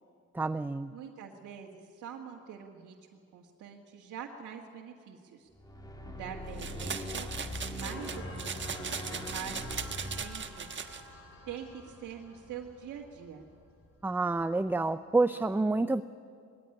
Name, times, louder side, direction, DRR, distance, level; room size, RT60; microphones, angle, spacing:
voice 1, 0.3-0.9 14.0-16.0, right 3 dB, 5° right, 11 dB, 0.5 m, -28 dB
voice 2, 0.9-3.0 3.3-5.5 6.0-7.3 7.7-10.9 11.5-13.4, right 8 dB, 75° right, -3 dB, 1.9 m, -45 dB
sound 1, 5.6-11.9, left 1 dB, 15° left, 2.3 m, -42 dB
sound 2, 6.6-11.0, right 6 dB, 40° right, 1.3 m, -39 dB
sound 3, 7.8-14.8, left 3 dB, 45° left, 3.9 m, -51 dB
19.5 x 16.5 x 10.0 m, 2.2 s
cardioid pair, 90°, 30 cm